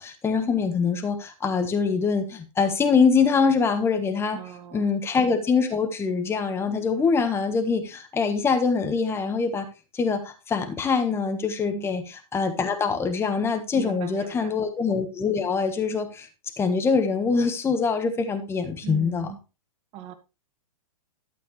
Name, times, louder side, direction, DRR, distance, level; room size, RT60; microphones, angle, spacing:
voice 1, 0.0-4.4 4.7-9.6 9.9-16.3 16.6-19.3, left 5 dB, 15° left, 7 dB, 1.4 m, -24 dB
voice 2, 4.3-4.9 11.7-11.9 13.7-14.6 18.8-19.4 19.9-20.1, right 10 dB, 35° right, 9 dB, 1.6 m, -39 dB
12.0 x 7.8 x 3.2 m, 0.29 s
hypercardioid pair, 135°, 19 cm